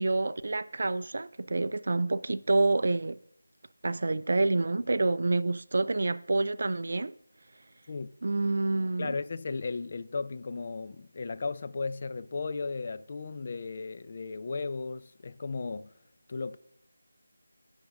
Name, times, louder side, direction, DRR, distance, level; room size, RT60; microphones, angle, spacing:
voice 1, 0.0-3.2 3.8-7.1 8.2-9.1, right 2 dB, 50° right, 0.3 m, -28 dB
voice 2, 9.0-15.9 16.3-16.6, left 4 dB, 35° left, 0.3 m, -35 dB
10.0 x 3.5 x 6.1 m
figure-of-eight pair, 170°, 0 cm